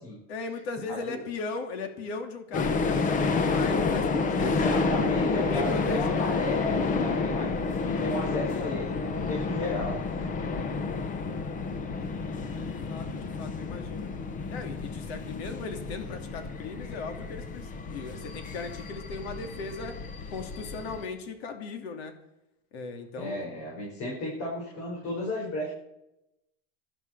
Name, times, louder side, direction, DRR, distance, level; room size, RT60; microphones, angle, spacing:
voice 1, 0.3-4.8 5.4-6.2 12.4-14.1 14.5-20.0 20.3-22.1 22.7-23.4, left 3 dB, 85° left, 6 dB, 2.8 m, -38 dB
voice 2, 0.9-1.2 4.4-10.0 23.2-25.7, left 1 dB, 50° left, -4 dB, 6.3 m, -34 dB
sound 1, 2.5-21.1, left 4 dB, 25° left, 1.1 m, -30 dB
17.5 x 13.0 x 4.8 m, 0.88 s
supercardioid pair, 155°, 31 cm